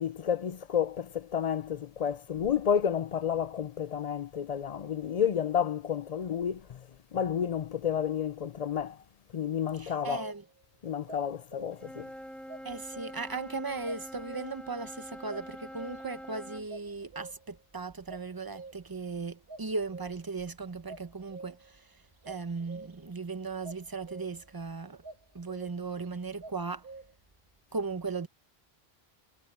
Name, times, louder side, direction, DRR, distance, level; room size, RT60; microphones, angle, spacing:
voice 1, 0.0-9.0 9.3-10.2 10.8-12.1, left 8 dB, 50° left, 0.5 m, -31 dB
voice 2, 9.7-10.4 12.6-21.6 22.3-25.0 25.3-26.8 27.7-28.3, right 4 dB, 25° right, 0.8 m, -37 dB
sound 1, 10.1-10.6 11.1-12.0 12.5-13.4 13.8-14.8 15.3-16.3 16.7-17.6 18.1-19.1 19.5-20.4 20.9-21.8 22.2-23.1 23.6-24.6 25.0-26.1 26.4-27.2, right 3 dB, 65° right, 1.6 m, -47 dB
Wind instrument woodwind instrument, 11.7-16.7, equal, ahead, 4.9 m, -45 dB
omnidirectional pair, 1.1 m